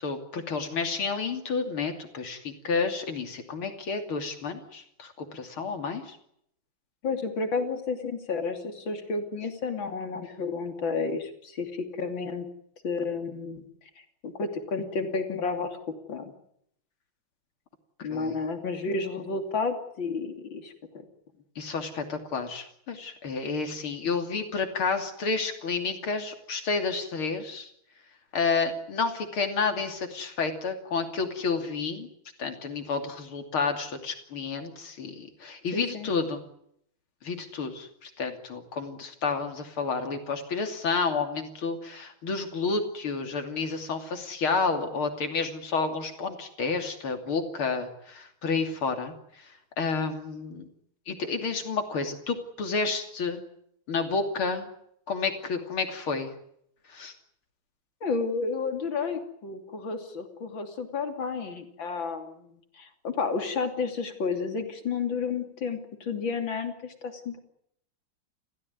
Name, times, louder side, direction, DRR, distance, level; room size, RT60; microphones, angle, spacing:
voice 1, 0.0-6.2 18.0-18.4 21.6-27.7 28.3-32.1 32.4-36.4 37.2-49.5 49.8-50.7 51.1-53.4 53.9-54.7 55.1-56.3 56.9-57.1, left 4 dB, 80° left, 6 dB, 3.7 m, -30 dB
voice 2, 7.0-12.5 12.8-13.6 14.2-15.7 16.1-16.3 18.0-20.7 35.7-36.1 58.0-67.4, left 4 dB, 65° left, 6 dB, 3.6 m, -31 dB
30.0 x 15.5 x 9.5 m, 0.73 s
omnidirectional pair, 2.3 m